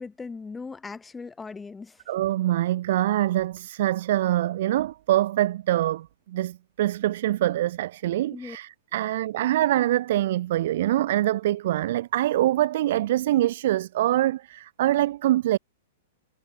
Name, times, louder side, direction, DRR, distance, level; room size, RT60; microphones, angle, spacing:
voice 1, 0.0-2.0 8.3-8.6, left 4 dB, 10° left, 2.4 m, -39 dB
voice 2, 2.1-15.6, right 14 dB, 65° right, 1.4 m, -24 dB
hypercardioid pair, 140°, 0 cm